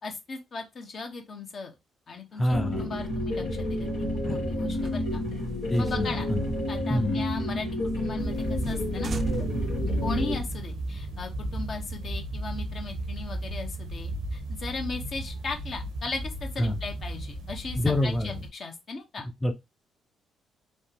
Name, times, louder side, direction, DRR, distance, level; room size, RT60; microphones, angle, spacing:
voice 1, 0.0-1.7 2.1-2.5 2.8-3.9 4.3-5.2 5.8-6.3 6.7-7.7 8.0-9.1 10.0-19.3, left 4 dB, 55° left, 0.8 m, -37 dB
voice 2, 2.3-2.9 4.2-4.5 5.7-6.5 6.9-7.2 16.6-16.8 17.8-18.4 19.4-19.5, left 1 dB, 20° left, 0.5 m, -27 dB
sound 1, 2.5-10.4, left 1 dB, 80° left, 1.0 m, -30 dB
sound 2, 4.7-7.5 7.9-8.0 8.3-8.4 8.6-8.8 9.0-10.7, right 5 dB, 55° right, 0.4 m, -39 dB
sound 3, 8.2-18.5, right 1 dB, 85° right, 0.8 m, -34 dB
3.2 x 2.1 x 2.9 m
hypercardioid pair, 50°, 0 cm